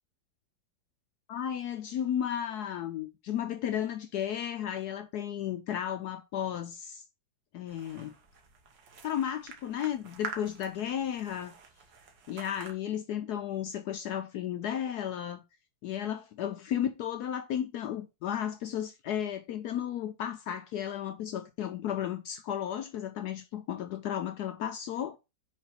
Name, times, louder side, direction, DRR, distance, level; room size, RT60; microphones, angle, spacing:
voice 1, 1.3-7.0 7.5-8.1 9.0-11.5 12.3-15.4 15.8-25.2, left 10 dB, 70° left, 1.0 m, -34 dB
sound 1, 7.7-12.7, right 5 dB, 70° right, 1.6 m, -46 dB
4.6 x 3.6 x 5.6 m
omnidirectional pair, 2.0 m